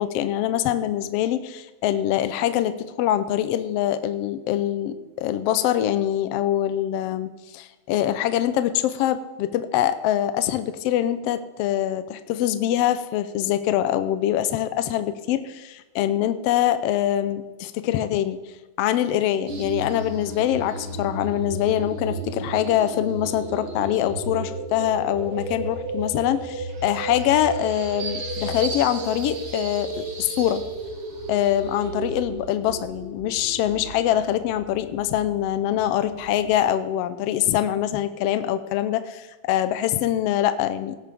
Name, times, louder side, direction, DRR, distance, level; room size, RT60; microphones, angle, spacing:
voice 1, 0.0-18.4 18.8-30.6 31.3-41.0, left 11 dB, 80° left, 11 dB, 1.4 m, -24 dB
sound 1, 19.5-36.6, right 2 dB, 65° right, 3.4 m, -33 dB
18.0 x 9.9 x 3.5 m, 1.1 s
omnidirectional pair, 3.5 m